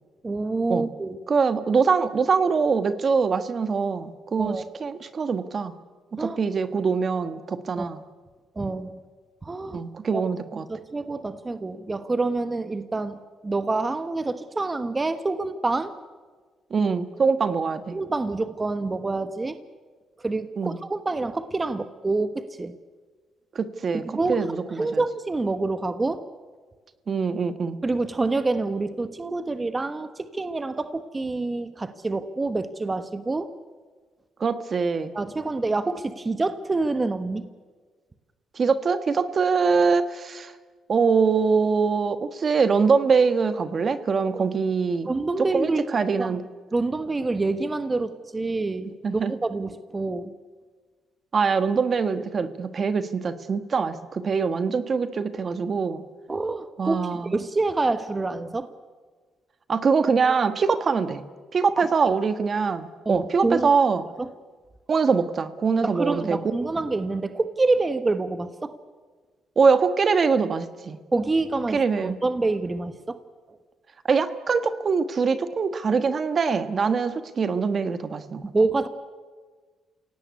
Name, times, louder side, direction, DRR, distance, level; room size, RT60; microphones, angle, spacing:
voice 1, 0.2-1.2 4.4-4.6 6.2-6.4 7.8-7.9 8.6-9.0 9.4-9.8 10.1-10.3 10.7-13.2 13.4-15.9 17.9-19.6 20.2-22.7 24.0-24.5 24.8-26.3 27.8-33.5 35.1-37.5 44.3-44.4 45.1-45.8 46.2-46.4 46.7-50.3 56.3-58.7 61.8-62.1 63.0-63.7 64.2-64.3 65.8-68.7 71.1-73.2 78.5-78.9, right 3 dB, 25° right, 11 dB, 1.2 m, -27 dB
voice 2, 1.3-5.7 6.1-8.0 9.7-10.6 16.7-18.0 20.6-20.8 23.5-24.0 24.3-25.0 27.1-27.8 34.4-35.1 38.5-40.5 40.9-45.1 45.5-46.4 49.0-49.3 51.3-56.0 56.8-57.3 59.7-61.2 61.5-64.0 64.9-66.4 69.6-71.0 71.7-72.2 74.0-78.5, right 5 dB, 45° right, 11 dB, 1.3 m, -23 dB
28.0 x 17.5 x 9.5 m, 1.4 s
cardioid pair, 90°, 0 cm